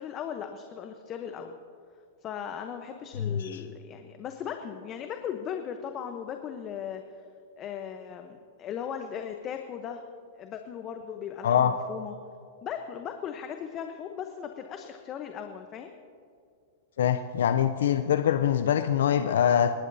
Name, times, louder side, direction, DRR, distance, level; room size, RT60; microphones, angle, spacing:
voice 1, 0.0-1.6 2.2-7.0 7.6-10.0 10.4-12.1 12.6-15.9, left 8 dB, 35° left, 6 dB, 0.9 m, -37 dB
voice 2, 3.2-3.6 11.4-11.7 17.0-19.7, left 9 dB, 75° left, 9 dB, 0.5 m, -24 dB
27.0 x 11.0 x 2.7 m, 2.3 s
hypercardioid pair, 120°, 0 cm